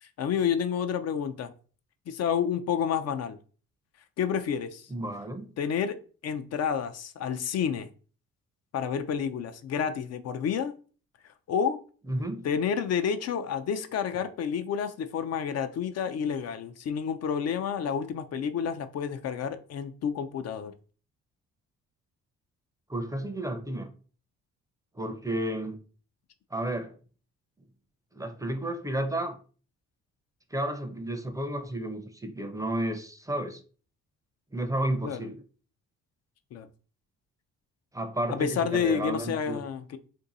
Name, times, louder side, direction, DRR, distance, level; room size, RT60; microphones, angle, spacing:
voice 1, 0.0-1.5 2.1-3.4 4.2-4.9 5.6-5.9 6.2-7.9 8.7-10.7 11.5-11.8 12.4-20.7 35.0-35.2 36.5-36.7 38.3-40.0, left 7 dB, 60° left, 0.4 m, -29 dB
voice 2, 4.9-5.5 12.1-12.4 22.9-23.9 25.0-25.8 26.5-26.9 28.1-29.4 30.5-33.6 34.5-35.4 37.9-39.6, right 1 dB, 10° right, 0.5 m, -32 dB
2.7 x 2.6 x 3.8 m
cardioid pair, 90°, 30 cm